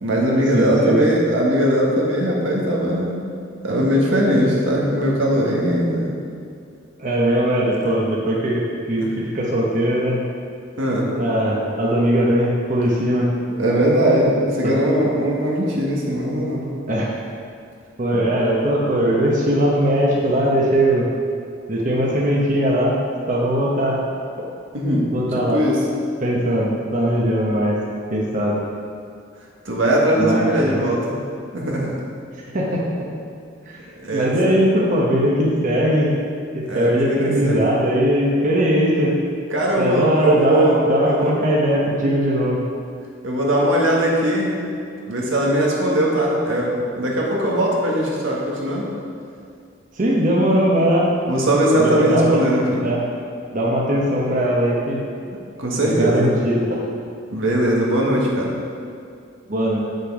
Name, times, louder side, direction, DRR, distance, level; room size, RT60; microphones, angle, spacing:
voice 1, 0.0-3.2 3.6-6.1 10.8-11.1 13.6-16.6 24.7-25.8 29.7-31.2 31.5-31.9 34.0-34.6 36.7-37.7 39.5-41.3 43.2-44.6 45.1-48.9 51.3-52.8 55.3-56.3 57.3-58.5, right 1 dB, 80° right, -3 dB, 1.7 m, -20 dB
voice 2, 0.5-1.0 7.0-10.2 11.2-13.3 14.6-14.7 16.9-17.2 18.0-21.1 21.7-23.0 23.3-24.0 25.1-25.6 26.2-27.8 28.1-28.6 30.2-30.8 32.5-32.9 33.6-33.8 34.1-36.1 36.5-39.1 39.8-42.6 49.9-51.1 51.8-52.4 52.8-53.0 53.5-55.0 55.8-56.8 59.5-59.8, right 1 dB, 40° right, -4 dB, 1.0 m, -20 dB
8.2 x 6.6 x 4.9 m, 2.4 s
head